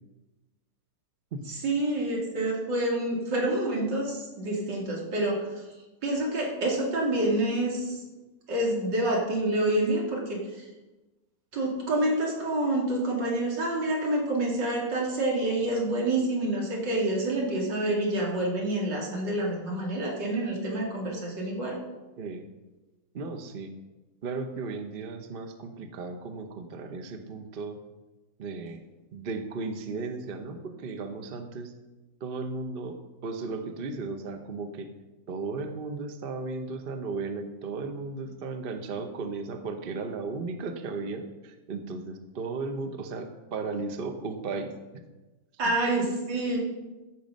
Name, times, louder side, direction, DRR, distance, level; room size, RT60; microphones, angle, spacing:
voice 1, 1.6-5.5 6.0-8.0 8.5-10.6 11.5-21.8 45.6-46.6, right 1 dB, 80° right, -2 dB, 3.0 m, -27 dB
voice 2, 23.1-23.7 24.2-27.8 28.4-28.8 29.1-31.7 32.2-33.0 33.2-34.9 35.3-45.0 45.6-45.7, right 3 dB, 40° right, 6 dB, 0.8 m, -35 dB
14.5 x 6.1 x 5.3 m, 1.1 s
omnidirectional pair, 1.9 m